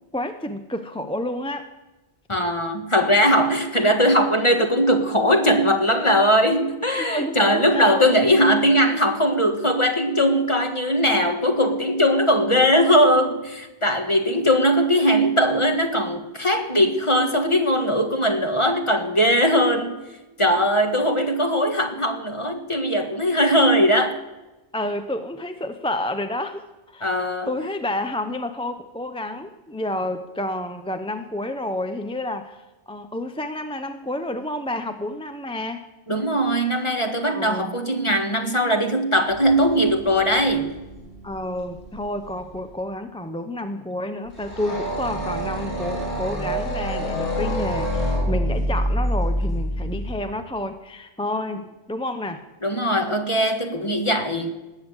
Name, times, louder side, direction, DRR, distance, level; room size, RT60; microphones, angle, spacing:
voice 1, 0.1-1.7 7.0-8.1 24.7-26.6 26.9-35.9 37.3-37.8 41.2-52.4, left 1 dB, 5° left, 8 dB, 0.5 m, -30 dB
voice 2, 2.3-20.0 20.4-24.2 27.0-27.5 36.1-40.7 52.6-54.5, equal, 25° left, 5 dB, 1.6 m, -20 dB
sound 1, 39.3-42.0 42.2-42.6 44.3-50.2, equal, 50° left, 7.7 m, -27 dB
19.5 x 8.6 x 8.1 m, 1.1 s
omnidirectional pair, 1.2 m